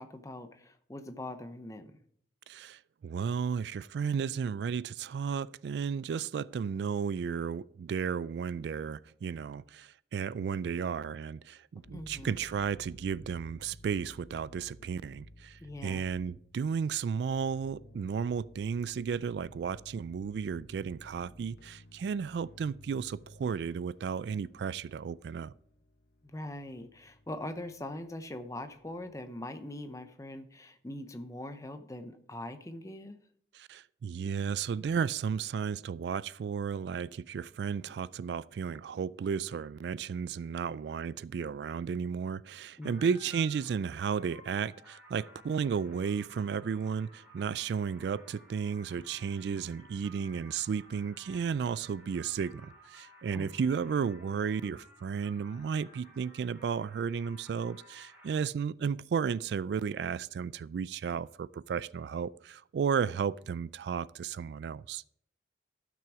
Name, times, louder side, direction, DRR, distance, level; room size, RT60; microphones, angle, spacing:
voice 1, 0.0-1.9 11.9-12.3 15.6-16.0 26.2-33.2 42.8-43.0 53.3-53.8, left 1 dB, 20° left, 0.7 m, -42 dB
voice 2, 2.5-25.5 33.5-65.0, right 6 dB, 70° right, 0.3 m, -33 dB
sound 1, 11.8-29.2, left 1 dB, 80° left, 0.9 m, -56 dB
sound 2, 42.8-58.4, equal, 10° right, 3.3 m, -56 dB
12.0 x 6.1 x 4.8 m
head